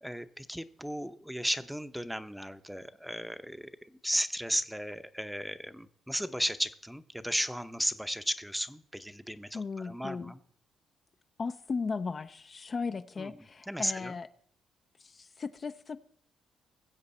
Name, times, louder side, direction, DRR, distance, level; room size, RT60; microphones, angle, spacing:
voice 1, 0.0-10.4 13.2-13.3 13.7-14.2, equal, ahead, 0.7 m, -35 dB
voice 2, 9.5-10.3 11.4-14.3 15.0-16.0, left 4 dB, 40° left, 0.4 m, -36 dB
20.5 x 7.7 x 4.2 m
cardioid pair, 90°, 0 cm